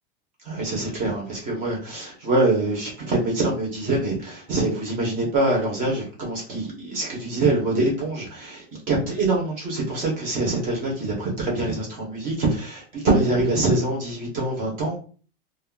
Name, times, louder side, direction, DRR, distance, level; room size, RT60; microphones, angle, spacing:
voice 1, 0.4-15.0, right 2 dB, 25° right, -2 dB, 0.7 m, -24 dB
2.3 x 2.1 x 3.6 m, 0.39 s
supercardioid pair, 170°, 31 cm